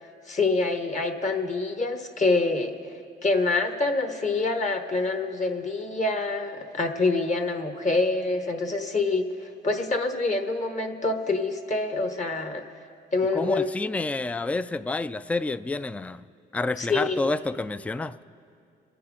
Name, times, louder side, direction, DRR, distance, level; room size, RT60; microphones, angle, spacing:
voice 1, 0.3-2.8 3.2-12.6 13.1-13.7 16.8-17.2, left 3 dB, 35° left, 6 dB, 1.3 m, -26 dB
voice 2, 13.3-16.3 16.5-18.1, left 3 dB, 5° left, 14 dB, 0.3 m, -29 dB
27.5 x 10.0 x 3.9 m, 2.4 s
cardioid pair, 90°, 20 cm